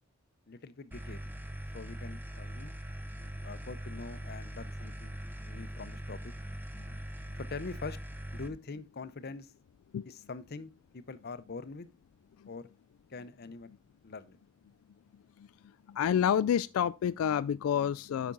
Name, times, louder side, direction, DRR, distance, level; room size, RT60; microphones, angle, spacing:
voice 1, 0.5-1.2 1.7-2.7 3.2-5.2 5.5-6.3 7.4-8.0 8.3-9.5 10.0-11.9 12.5-12.7 13.1-13.7 14.0-14.4, left 4 dB, 50° left, 0.6 m, -44 dB
sound 1, 0.9-8.5, equal, 10° right, 0.7 m, -42 dB
voice 2, 16.0-18.3, left 9 dB, 90° left, 0.3 m, -28 dB
8.5 x 5.9 x 3.8 m
head